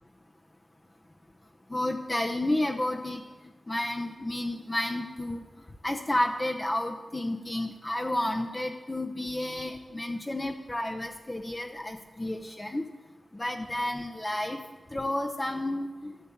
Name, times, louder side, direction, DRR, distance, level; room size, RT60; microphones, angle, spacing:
voice 1, 1.7-3.3 3.7-5.4 5.8-12.9 13.3-14.6 14.9-16.2, left 1 dB, 25° left, 2 dB, 0.8 m, -31 dB
13.0 x 6.9 x 7.1 m, 1.4 s
cardioid pair, 60°, 0 cm